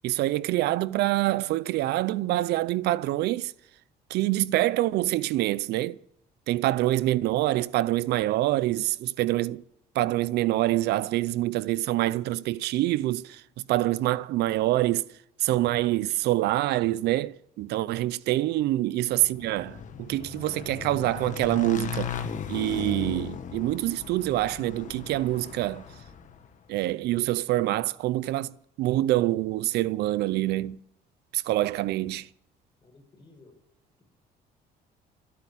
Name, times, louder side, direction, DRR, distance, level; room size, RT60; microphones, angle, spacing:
voice 1, 0.0-3.5 4.1-6.0 6.5-9.6 9.9-13.4 13.7-15.1 15.4-22.1 22.5-25.8 26.7-30.8 31.3-32.3, right 16 dB, 75° right, 0.6 m, -26 dB
Motorcycle / Engine, 19.2-26.5, left 7 dB, 50° left, 1.6 m, -37 dB
voice 2, 32.8-33.6, left 2 dB, 30° left, 5.9 m, -55 dB
13.0 x 8.8 x 9.6 m
cardioid pair, 110°, 17 cm